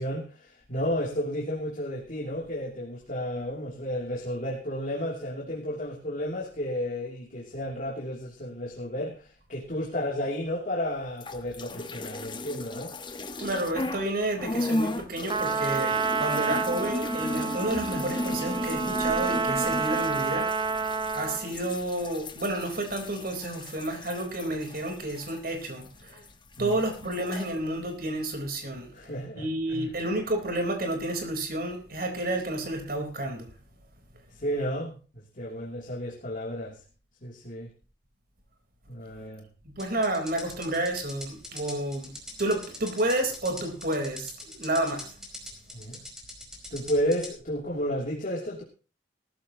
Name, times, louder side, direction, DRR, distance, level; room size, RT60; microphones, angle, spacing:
voice 1, 0.0-12.9 26.6-26.8 28.9-29.9 34.3-36.8 37.2-37.7 38.9-39.5 45.7-46.0 46.7-48.6, equal, 50° left, 2.9 m, -32 dB
sound 1, 11.1-14.1 14.4-26.3 26.5-27.5, left 2 dB, 25° left, 1.2 m, -35 dB
voice 2, 13.4-20.8 21.1-26.2 26.6-28.9 29.4-33.5 39.6-42.1 42.4-45.1, right 1 dB, 55° right, 4.1 m, -30 dB
Trumpet, 15.3-21.5, right 5 dB, 25° right, 0.8 m, -29 dB
sound 2, 39.8-47.3, left 1 dB, 5° right, 4.7 m, -42 dB
18.5 x 14.0 x 3.0 m
head